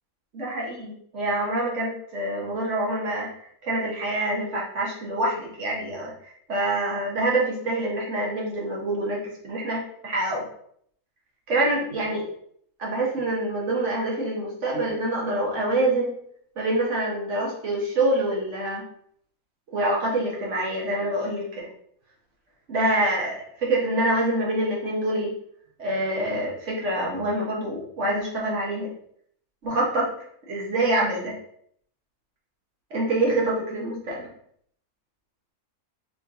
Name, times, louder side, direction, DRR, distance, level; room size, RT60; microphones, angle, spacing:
voice 1, 0.3-10.5 11.5-12.2 12.8-16.1 16.6-18.8 19.7-21.7 22.7-25.3 25.8-28.9 29.6-30.1 30.5-31.3 32.9-34.2, right 1 dB, 55° right, -3 dB, 1.3 m, -26 dB
3.5 x 2.8 x 3.6 m, 0.65 s
omnidirectional pair, 1.6 m